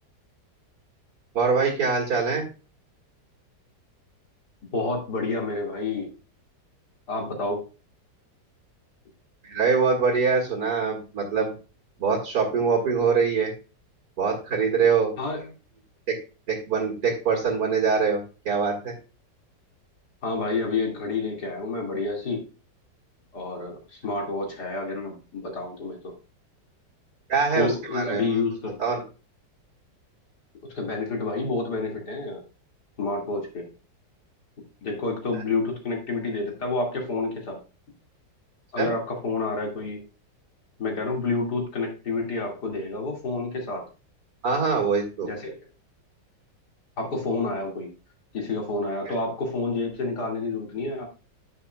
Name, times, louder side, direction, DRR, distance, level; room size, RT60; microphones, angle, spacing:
voice 1, 1.3-2.4 9.4-11.5 12.0-13.5 14.2-15.1 16.1-16.2 16.5-18.2 18.5-18.9 27.3-28.2 28.8-29.0 38.8-38.9 40.9-41.0 44.4-45.3 49.1-49.2, right 5 dB, 65° right, -1 dB, 2.4 m, -23 dB
voice 2, 4.7-6.1 7.1-7.6 15.2-15.4 20.2-22.4 23.3-26.0 27.5-28.8 30.7-32.4 33.0-33.6 34.8-37.6 38.7-40.0 40.8-43.9 45.2-45.6 47.0-47.9 48.3-51.1, left 3 dB, 65° left, 0 dB, 2.9 m, -29 dB
9.1 x 8.2 x 2.3 m, 0.33 s
omnidirectional pair, 1.9 m